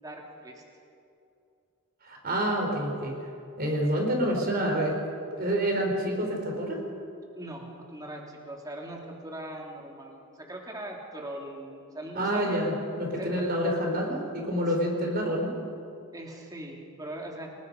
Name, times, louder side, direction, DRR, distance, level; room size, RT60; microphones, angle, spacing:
voice 1, 0.0-0.6 7.4-12.6 13.1-13.7 16.1-17.5, right 1 dB, 15° right, 0 dB, 3.0 m, -40 dB
voice 2, 2.0-3.1 3.6-5.0 5.3-6.8 12.1-15.5, equal, 45° right, 1 dB, 4.3 m, -28 dB
29.5 x 20.0 x 5.4 m, 2.6 s
head